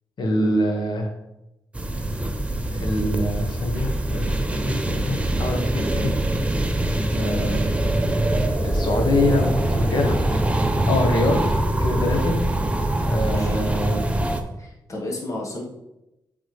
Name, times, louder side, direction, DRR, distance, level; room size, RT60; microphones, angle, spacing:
voice 1, 0.2-1.1 2.8-5.7 5.9-6.1 7.1-7.7 8.6-10.2 10.9-12.4 13.0-14.2, left 1 dB, 65° left, 2 dB, 1.4 m, -25 dB
sound 1, 1.7-14.4, right 1 dB, 15° right, 0.7 m, -23 dB
voice 2, 13.1-13.6 14.6-15.7, left 1 dB, 40° left, -2 dB, 1.6 m, -33 dB
7.8 x 4.2 x 3.4 m, 0.91 s
cardioid pair, 100°, 8 cm